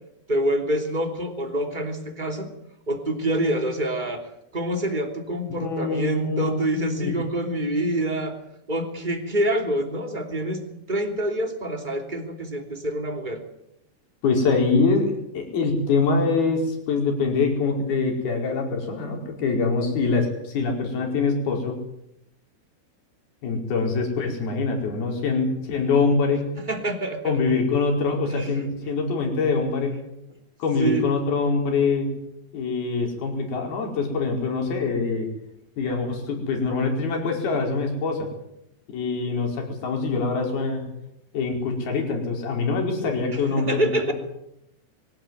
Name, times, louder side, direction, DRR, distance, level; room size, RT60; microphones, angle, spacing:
voice 1, 0.3-2.5 2.9-8.4 8.7-10.6 10.9-13.4 26.7-27.4 28.3-28.5 30.8-31.0 43.3-44.1, right 1 dB, 15° right, 4 dB, 2.3 m, -26 dB
voice 2, 5.6-7.2 14.2-21.8 23.4-26.5 27.2-29.9 30.6-32.1 32.5-35.3 35.8-38.3 38.9-40.9 41.3-43.9, left 4 dB, 60° left, 2 dB, 6.7 m, -24 dB
23.5 x 17.0 x 9.6 m, 0.80 s
omnidirectional pair, 5.1 m